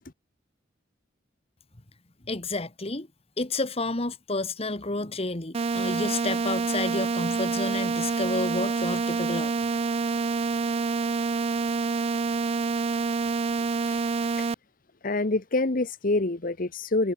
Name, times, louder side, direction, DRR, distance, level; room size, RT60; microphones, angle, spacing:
voice 1, 2.3-3.1 3.4-9.5, left 2 dB, 30° left, 1.6 m, -30 dB
sound 1, 5.5-14.5, right 4 dB, 30° right, 0.3 m, -27 dB
voice 2, 15.0-17.1, left 2 dB, 45° left, 1.1 m, -26 dB
head